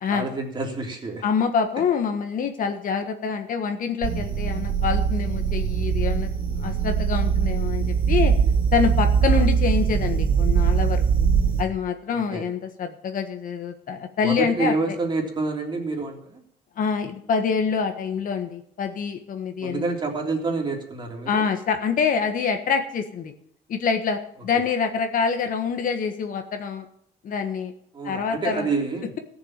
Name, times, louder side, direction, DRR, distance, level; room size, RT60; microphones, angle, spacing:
voice 1, 0.1-1.2 9.2-9.5 12.1-12.4 14.2-16.4 19.6-21.4 27.9-29.1, right 3 dB, 30° right, 0 dB, 3.3 m, -28 dB
voice 2, 1.2-8.3 8.7-11.3 11.6-15.0 16.8-19.9 21.3-23.3 23.7-26.9 27.2-27.7 28.0-28.7, left 6 dB, 55° left, 6 dB, 1.5 m, -26 dB
sound 1, 4.0-11.6, right 7 dB, 60° right, 1.6 m, -22 dB
15.0 x 7.1 x 7.5 m, 0.69 s
cardioid pair, 110°, 17 cm